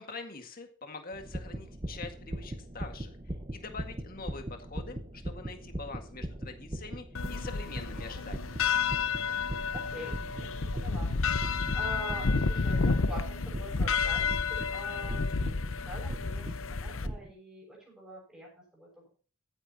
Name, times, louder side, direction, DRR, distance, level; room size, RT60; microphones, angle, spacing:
voice 1, 0.0-3.1 3.5-8.6, left 3 dB, 40° left, 5 dB, 1.9 m, -44 dB
sound 1, 1.1-17.3, right 1 dB, 25° right, 1.0 m, -40 dB
sound 2, 7.1-17.1, left 4 dB, 60° left, 0.8 m, -30 dB
voice 2, 9.7-10.5 10.7-11.1 11.4-15.5 15.8-19.1, right 1 dB, 5° right, -5 dB, 6.6 m, -45 dB
15.0 x 9.9 x 2.9 m, 0.39 s
head